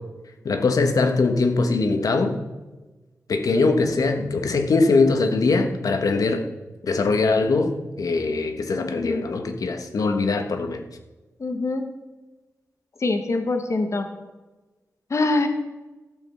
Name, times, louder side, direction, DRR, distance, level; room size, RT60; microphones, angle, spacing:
voice 1, 0.4-2.4 3.3-6.5 6.8-7.7 8.0-10.8, left 3 dB, 80° left, 5 dB, 1.4 m, -21 dB
voice 2, 9.0-9.3 11.4-11.9 13.0-14.1 15.1-15.5, left 2 dB, 55° left, 6 dB, 1.4 m, -24 dB
13.0 x 7.1 x 5.7 m, 1.2 s
cardioid pair, 70°, 6 cm